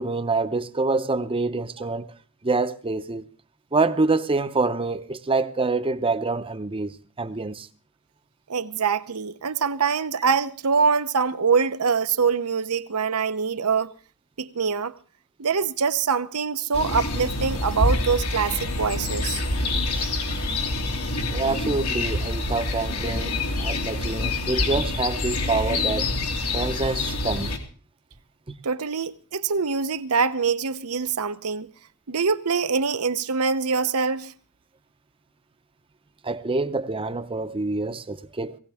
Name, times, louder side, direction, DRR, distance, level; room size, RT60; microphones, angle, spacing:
voice 1, 0.0-2.1 2.4-3.3 3.7-7.7 19.9-20.1 21.3-26.1 26.5-27.5 28.5-28.6 36.2-38.6, right 3 dB, 25° right, 0.8 m, -26 dB
voice 2, 8.5-13.9 14.4-14.9 15.4-19.4 28.6-31.7 32.1-34.3, right 5 dB, 80° right, 0.9 m, -24 dB
sound 1, 16.7-27.6, left 2 dB, 85° left, 2.7 m, -26 dB
19.0 x 17.0 x 3.5 m
head